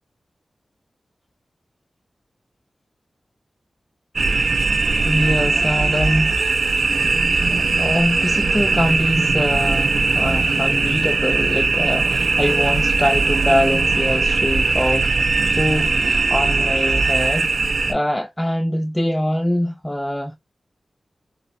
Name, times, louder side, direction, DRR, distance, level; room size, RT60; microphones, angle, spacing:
sound 1, 4.2-17.9, right 3 dB, 85° right, 0.4 m, -19 dB
voice 1, 5.0-6.4 7.8-15.3 15.6-17.5 17.9-20.4, equal, 10° left, 0.3 m, -23 dB
3.0 x 2.0 x 2.3 m
cardioid pair, 60°, 0 cm